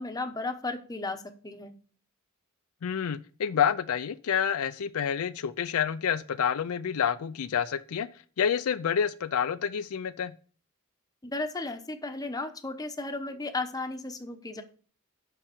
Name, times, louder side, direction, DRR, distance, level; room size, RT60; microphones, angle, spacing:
voice 1, 0.0-1.7 11.2-14.6, left 2 dB, 15° left, 0.8 m, -34 dB
voice 2, 2.8-8.1 8.4-10.3, left 8 dB, 75° left, 0.4 m, -28 dB
5.9 x 5.8 x 6.5 m
head